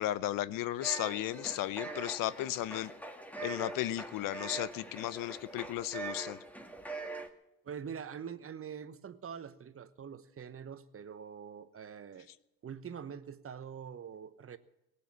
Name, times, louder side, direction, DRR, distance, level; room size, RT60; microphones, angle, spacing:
voice 1, 0.0-2.9 3.4-6.4, left 14 dB, 50° left, 18 dB, 0.7 m, -35 dB
sound 1, 0.8-7.3, right 3 dB, 5° left, 1.8 m, -43 dB
voice 2, 7.6-12.3 12.6-14.6, right 7 dB, 30° right, 12 dB, 1.1 m, -44 dB
18.5 x 8.5 x 8.6 m, 0.90 s
hypercardioid pair, 65°, 42 cm